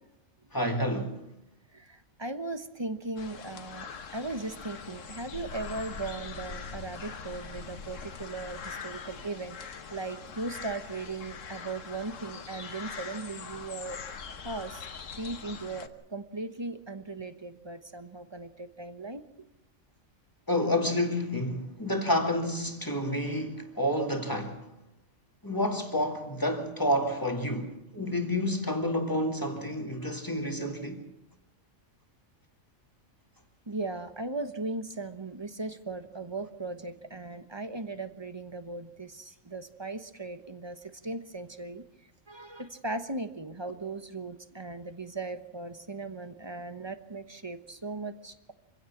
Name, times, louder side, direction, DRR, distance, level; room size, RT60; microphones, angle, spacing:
voice 1, 0.5-1.2 20.5-24.6 25.4-31.0, left 1 dB, 15° left, 2.2 m, -29 dB
voice 2, 1.7-14.0 14.4-14.9 15.2-19.2 33.7-41.8 42.3-48.5, right 3 dB, 20° right, 1.1 m, -38 dB
sound 1, 3.2-15.9, left 6 dB, 70° left, 1.5 m, -42 dB
25.5 x 16.5 x 7.2 m
omnidirectional pair, 1.4 m